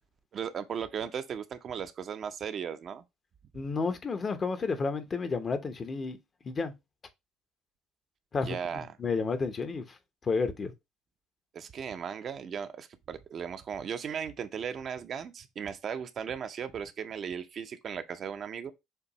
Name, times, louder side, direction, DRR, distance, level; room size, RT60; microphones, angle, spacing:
voice 1, 0.3-3.0 8.4-8.9 11.5-18.7, right 7 dB, 45° right, 0.6 m, -37 dB
voice 2, 3.5-6.2 6.4-6.7 8.3-9.8 10.2-10.7, left 4 dB, 35° left, 0.8 m, -31 dB
6.7 x 2.6 x 3.0 m
hypercardioid pair, 55°, 0 cm